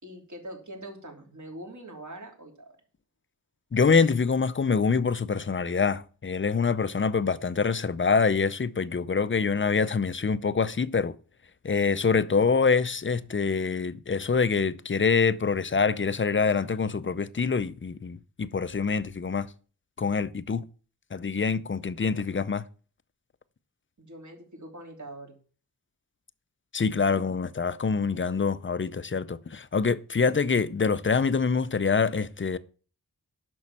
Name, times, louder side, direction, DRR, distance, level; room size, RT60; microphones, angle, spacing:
voice 1, 0.0-2.8 24.0-25.3, right 1 dB, 45° right, 3.3 m, -43 dB
voice 2, 3.7-11.1 11.6-19.5 20.0-20.6 21.1-22.6 26.7-32.6, left 5 dB, 30° left, 0.6 m, -25 dB
11.0 x 6.3 x 7.4 m
wide cardioid pair, 105°, 39 cm